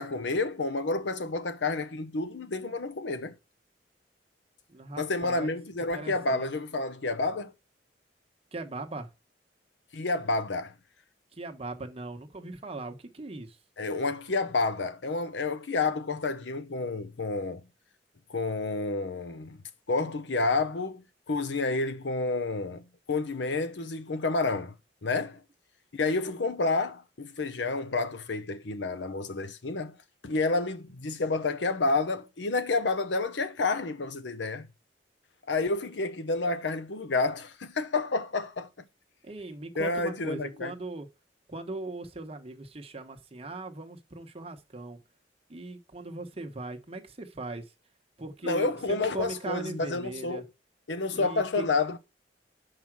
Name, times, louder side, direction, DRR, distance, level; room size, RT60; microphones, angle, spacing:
voice 1, 0.0-3.3 5.0-7.5 9.9-10.7 13.8-17.6 18.3-19.6 19.9-24.7 25.0-25.4 25.9-30.0 30.2-34.7 35.5-38.7 39.7-40.7 48.4-50.4 50.9-52.0, left 3 dB, 85° left, 0.8 m, -29 dB
voice 2, 4.7-5.6 5.9-6.5 8.5-9.1 11.3-13.6 39.2-41.1 41.5-45.0 45.5-47.6 48.2-50.4 51.1-51.7, right 2 dB, 35° right, 1.0 m, -39 dB
5.6 x 4.9 x 6.0 m
head